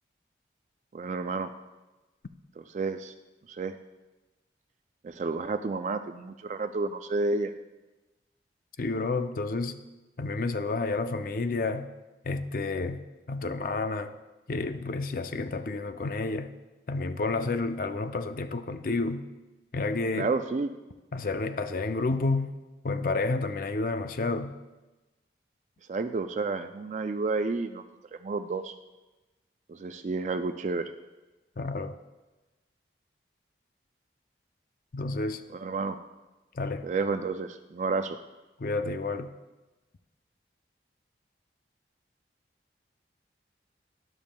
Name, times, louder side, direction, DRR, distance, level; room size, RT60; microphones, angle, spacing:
voice 1, 0.9-1.5 2.6-3.1 3.5-3.8 5.0-7.5 20.2-20.7 25.9-27.8 28.2-28.7 29.7-30.9 35.5-36.0 36.8-38.2, right 3 dB, 40° right, 9 dB, 0.3 m, -30 dB
voice 2, 8.8-9.8 10.2-11.9 12.3-14.2 14.5-16.5 16.9-19.3 19.7-20.3 21.1-22.5 22.8-24.5 31.6-32.0 34.9-35.4 36.5-36.9 38.6-39.3, left 3 dB, 50° left, 9 dB, 0.4 m, -30 dB
12.5 x 10.5 x 2.2 m, 1.1 s
head